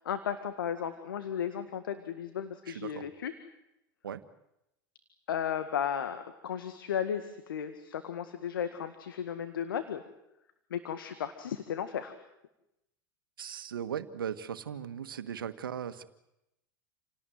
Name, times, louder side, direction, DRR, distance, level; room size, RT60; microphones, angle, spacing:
voice 1, 0.0-3.3 5.3-10.0 10.7-12.1, left 8 dB, 85° left, 10 dB, 1.9 m, -35 dB
voice 2, 2.7-3.0 4.0-4.2 13.4-16.0, right 8 dB, 90° right, 11 dB, 1.6 m, -38 dB
28.5 x 18.5 x 9.4 m, 0.87 s
hypercardioid pair, 95°, 11 cm